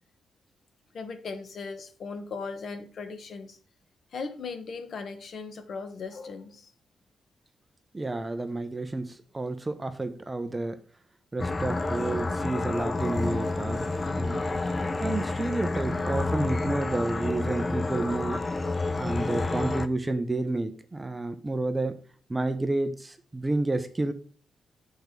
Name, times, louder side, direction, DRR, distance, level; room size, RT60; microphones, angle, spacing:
voice 1, 0.9-3.6 4.1-6.7, left 4 dB, 60° left, 9 dB, 1.1 m, -38 dB
voice 2, 7.9-10.8 11.3-13.9 14.2-14.4 15.0-18.4 19.0-22.0 22.3-24.1, right 2 dB, 20° right, 10 dB, 0.7 m, -30 dB
sound 1, 11.4-19.9, left 3 dB, 25° left, 0.5 m, -29 dB
6.5 x 4.7 x 5.2 m, 0.40 s
cardioid pair, 110°, 0 cm